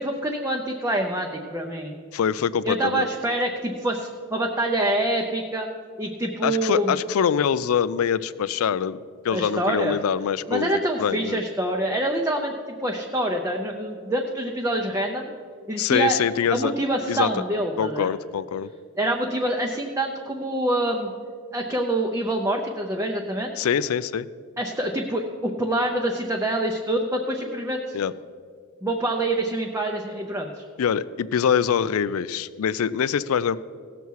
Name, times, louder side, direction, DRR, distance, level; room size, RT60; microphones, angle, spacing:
voice 1, 0.0-1.9 2.6-5.7 6.0-7.0 9.3-10.0 10.5-12.5 12.8-15.3 15.7-16.2 16.5-18.1 19.0-21.1 21.5-23.5 24.6-28.0 28.8-30.6, right 1 dB, 10° right, 1 dB, 0.6 m, -26 dB
voice 2, 2.1-3.1 6.4-9.0 9.2-10.7 11.0-11.4 15.8-16.7 17.1-17.3 17.8-18.7 23.6-24.3 27.9-28.1 30.8-33.6, left 7 dB, 75° left, 17 dB, 0.4 m, -24 dB
16.5 x 6.9 x 4.7 m, 2.1 s
head